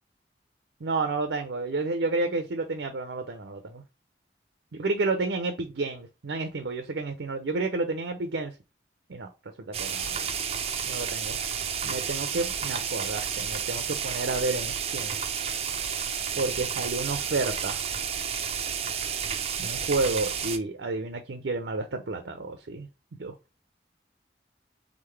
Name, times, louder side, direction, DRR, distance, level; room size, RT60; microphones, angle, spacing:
voice 1, 0.8-3.8 4.7-8.5 9.1-9.3 9.7-10.2 10.8-11.4 11.8-15.2 16.4-17.8 19.6-22.9 23.2-23.3, right 3 dB, 85° right, 0.6 m, -30 dB
sound 1, 9.7-20.6, right 7 dB, 35° right, 0.4 m, -31 dB
3.8 x 3.6 x 3.2 m
head